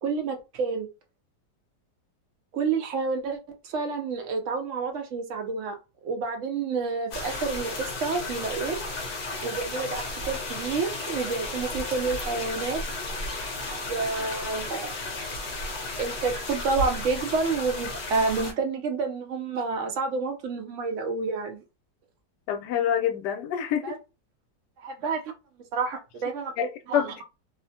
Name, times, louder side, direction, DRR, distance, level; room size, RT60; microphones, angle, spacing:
voice 1, 0.0-0.9 2.5-3.4 3.6-5.7 6.0-8.8 9.4-12.8 13.9-14.9 16.0-21.6 23.8-23.9 24.8-25.3 25.7-26.5 26.9-27.2, right 4 dB, 65° right, 0.7 m, -29 dB
sound 1, 7.1-18.5, left 2 dB, 50° left, 0.9 m, -33 dB
voice 2, 22.5-23.9 26.6-27.2, left 9 dB, 75° left, 1.1 m, -27 dB
2.9 x 2.1 x 2.7 m
omnidirectional pair, 1.9 m